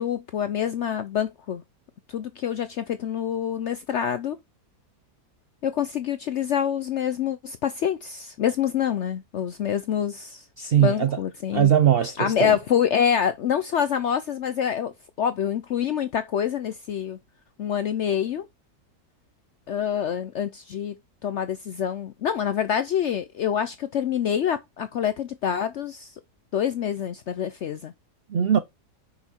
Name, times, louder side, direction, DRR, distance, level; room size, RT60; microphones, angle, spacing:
voice 1, 0.0-1.6 2.1-4.4 5.6-10.4 10.8-11.7 12.2-14.9 15.2-17.2 17.6-18.5 19.7-21.0 21.2-26.1 26.5-27.9, left 9 dB, 70° left, 0.7 m, -26 dB
voice 2, 10.6-11.1 11.5-12.5 28.3-28.6, right 10 dB, 80° right, 0.5 m, -20 dB
6.2 x 5.8 x 4.4 m
omnidirectional pair, 1.8 m